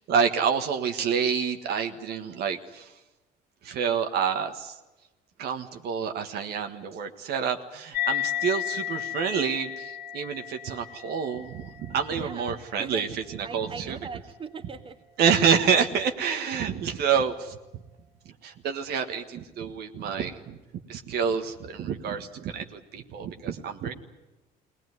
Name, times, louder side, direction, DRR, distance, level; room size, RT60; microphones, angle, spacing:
voice 1, 0.1-2.9 3.6-4.8 5.4-14.0 15.2-17.6 18.2-20.6 20.9-23.9, right 7 dB, 70° right, 6 dB, 1.6 m, -28 dB
sound 1, 7.9-14.8, left 11 dB, 75° left, 1.9 m, -35 dB
voice 2, 12.1-13.1 13.4-15.0, right 5 dB, 30° right, 7 dB, 1.7 m, -40 dB
21.0 x 18.5 x 9.6 m, 1.1 s
cardioid pair, 110°, 17 cm